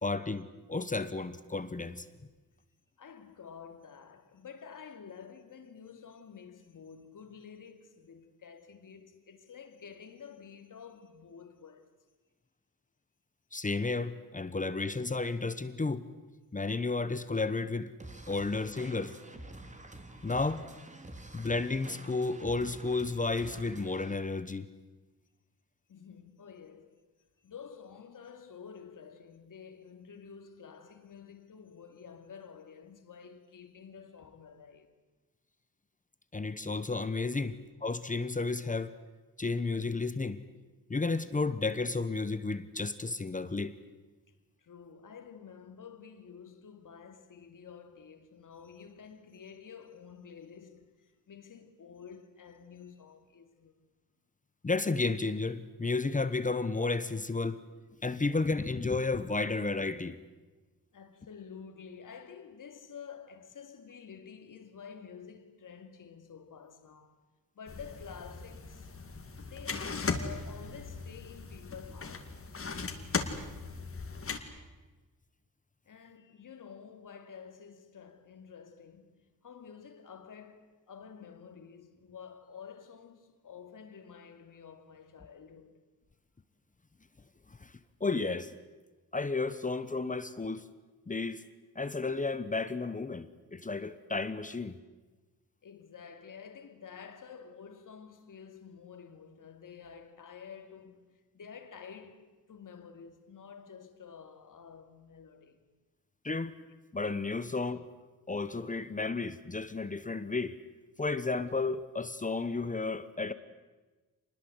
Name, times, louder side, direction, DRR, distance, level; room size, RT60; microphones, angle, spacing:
voice 1, 0.0-2.1 13.5-16.1 16.5-17.9 18.3-19.2 20.2-20.6 21.3-24.7 36.3-37.6 37.8-38.9 39.4-40.4 40.9-43.8 54.6-57.6 58.0-60.2 87.6-87.7 88.0-88.5 89.1-90.6 91.1-91.4 91.7-94.8 106.2-106.5 106.9-107.8 108.3-110.6 111.0-113.3, left 3 dB, 20° left, 1.0 m, -32 dB
voice 2, 3.0-11.9 21.0-21.2 25.9-27.0 27.4-34.9 37.4-37.5 44.6-53.7 60.9-67.2 67.5-68.9 69.4-72.3 75.9-85.8 94.5-94.6 95.6-105.6, left 6 dB, 60° left, 2.5 m, -50 dB
sound 1, 18.0-24.2, right 1 dB, 20° right, 2.3 m, -48 dB
sound 2, 67.7-74.4, left 4 dB, 40° left, 2.4 m, -38 dB
26.0 x 20.5 x 8.1 m
wide cardioid pair, 125°, 36 cm